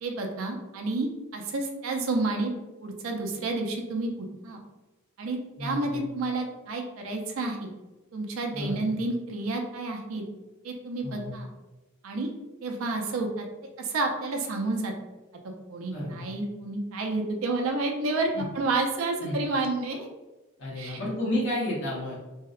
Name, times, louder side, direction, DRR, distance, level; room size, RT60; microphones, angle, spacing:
voice 1, 0.0-2.5 2.8-4.6 5.2-7.7 8.1-10.2 10.6-11.5 12.0-12.3 12.6-13.5 13.8-14.9 15.7-18.3 18.5-20.1 20.8-21.0, right 2 dB, 75° right, 3 dB, 0.4 m, -30 dB
voice 2, 5.6-6.0 8.5-8.9 11.0-11.3 15.8-16.3 18.3-18.4 19.2-19.4 20.6-22.2, left 1 dB, 60° left, -6 dB, 0.7 m, -31 dB
2.6 x 2.0 x 2.3 m, 1.1 s
head